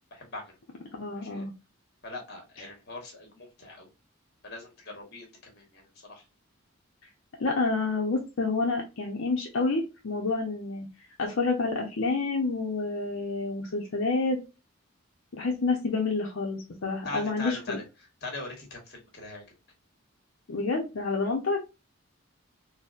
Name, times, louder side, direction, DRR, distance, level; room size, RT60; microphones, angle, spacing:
voice 1, 0.1-0.5 1.1-1.4 2.0-3.9 4.4-6.2 17.0-17.8 18.2-19.4 21.2-21.4, left 2 dB, 50° left, 1 dB, 1.3 m, -41 dB
voice 2, 1.0-1.5 2.6-2.7 7.4-10.9 11.2-14.4 15.3-17.8 20.5-21.6, left 3 dB, 75° left, 0 dB, 0.6 m, -28 dB
3.9 x 2.1 x 2.3 m, 0.27 s
head